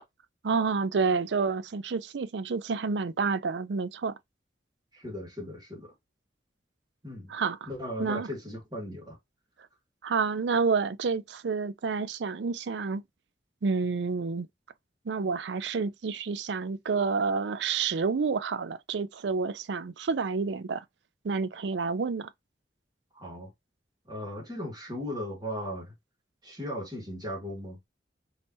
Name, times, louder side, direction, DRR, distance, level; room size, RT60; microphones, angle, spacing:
voice 1, 0.4-4.1 7.3-7.7 8.0-8.3 10.0-13.0 13.6-14.5 15.1-20.8 21.2-22.3, right 5 dB, 75° right, 0.5 m, -29 dB
voice 2, 4.9-5.9 7.0-7.3 7.6-9.2 23.1-23.5 24.1-25.9 26.4-27.8, equal, 25° right, 1.8 m, -37 dB
5.4 x 2.8 x 2.6 m
head